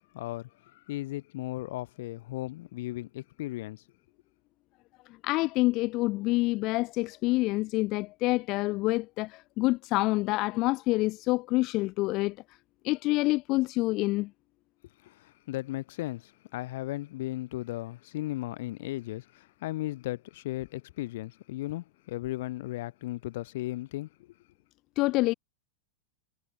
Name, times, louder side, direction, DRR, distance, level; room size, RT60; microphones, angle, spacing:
voice 1, 0.1-3.8 15.0-24.1, left 17 dB, 65° left, 3.4 m, -36 dB
voice 2, 5.2-12.4 12.8-14.3 25.0-25.3, left 21 dB, 45° left, 1.9 m, -27 dB
hypercardioid pair, 125°, 0 cm